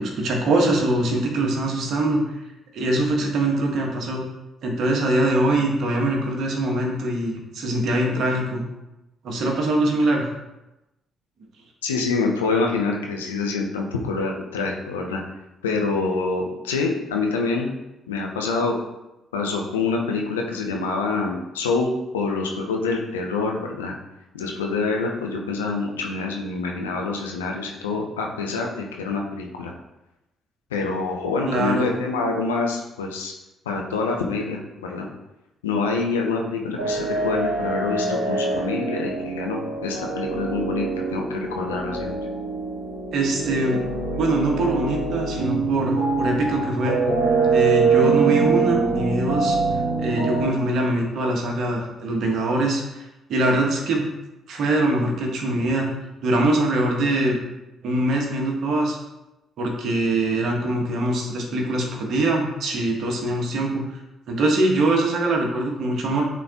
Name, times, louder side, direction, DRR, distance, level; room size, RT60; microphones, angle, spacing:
voice 1, 0.0-2.2 2.7-4.2 4.6-8.6 9.2-10.3 31.5-31.9 43.1-43.8 44.1-47.0 47.5-53.0 53.3-54.1 54.5-55.9 56.2-57.4 57.8-59.0 59.6-63.8 64.3-66.2, right 2 dB, 60° right, 0 dB, 1.5 m, -23 dB
voice 2, 11.8-15.2 15.6-17.7 18.1-18.7 19.3-24.0 24.3-29.7 30.7-33.3 33.7-35.1 35.6-42.1, left 4 dB, 90° left, 0 dB, 0.8 m, -26 dB
sound 1, 36.8-50.5, right 4 dB, 85° right, 1.4 m, -24 dB
8.2 x 4.1 x 3.0 m, 0.95 s
hypercardioid pair, 45°, 0 cm